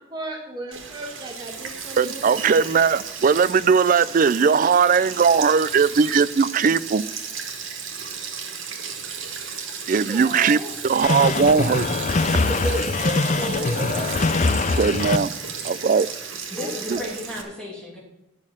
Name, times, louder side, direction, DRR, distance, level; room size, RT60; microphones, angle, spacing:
voice 1, 0.1-2.5 10.1-10.7 11.4-11.6 12.2-14.2 16.5-17.1, right 1 dB, 20° right, 1.2 m, -33 dB
Sink (filling or washing), 0.7-17.4, right 6 dB, 85° right, 1.8 m, -34 dB
voice 2, 2.0-7.0 9.9-10.6 10.8-11.9 14.8-15.3 15.6-16.1 16.9-17.0, right 5 dB, 45° right, 0.3 m, -19 dB
sound 1, 11.0-15.2, left 3 dB, 35° left, 0.5 m, -23 dB
voice 3, 16.5-18.0, left 1 dB, 5° left, 2.7 m, -34 dB
11.0 x 6.4 x 7.3 m
head